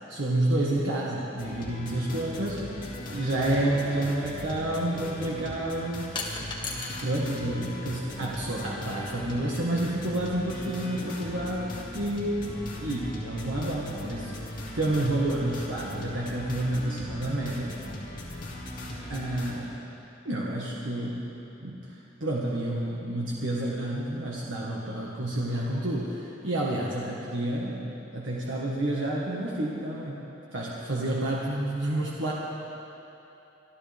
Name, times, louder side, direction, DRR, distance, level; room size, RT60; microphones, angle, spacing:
voice 1, 0.1-6.5 6.9-14.3 14.7-17.8 19.1-19.8 20.2-21.2 21.6-30.2 30.5-32.3, right 1 dB, 85° right, -4 dB, 1.6 m, -29 dB
sound 1, 1.4-19.5, left 1 dB, 45° left, 2.4 m, -39 dB
sound 2, 6.1-7.1 7.5-8.3, left 3 dB, 25° left, 1.7 m, -36 dB
25.5 x 13.0 x 3.5 m, 3.0 s
head